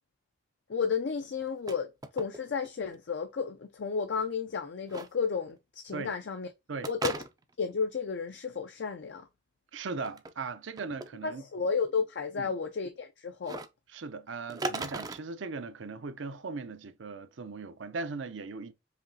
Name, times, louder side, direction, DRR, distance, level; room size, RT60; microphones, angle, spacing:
voice 1, 0.7-6.5 6.9-7.2 7.6-9.3 11.2-13.6, left 5 dB, 60° left, 0.4 m, -32 dB
sound 1, 1.4-1.8 2.0-2.7 2.9-3.0 4.9-5.1 6.8-7.6 9.9-10.3 10.8-11.1 13.4-13.7 14.5-15.2, right 3 dB, 20° right, 0.3 m, -36 dB
voice 2, 9.7-11.4 12.4-12.5 13.9-18.7, right 4 dB, 75° right, 0.6 m, -38 dB
5.0 x 3.0 x 2.7 m
head